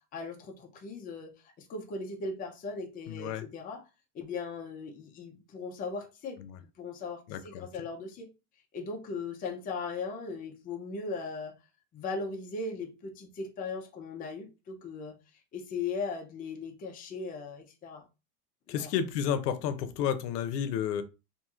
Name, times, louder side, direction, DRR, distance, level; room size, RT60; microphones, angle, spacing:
voice 1, 0.1-3.8 4.1-6.4 6.8-8.3 8.7-11.5 11.9-15.2 15.5-18.0 18.7-18.9, left 4 dB, 20° left, 0.5 m, -38 dB
voice 2, 3.1-3.4 6.5-6.6 7.3-7.7 18.7-21.0, left 8 dB, 85° left, 0.6 m, -31 dB
2.9 x 2.6 x 2.4 m
supercardioid pair, 135°, 47 cm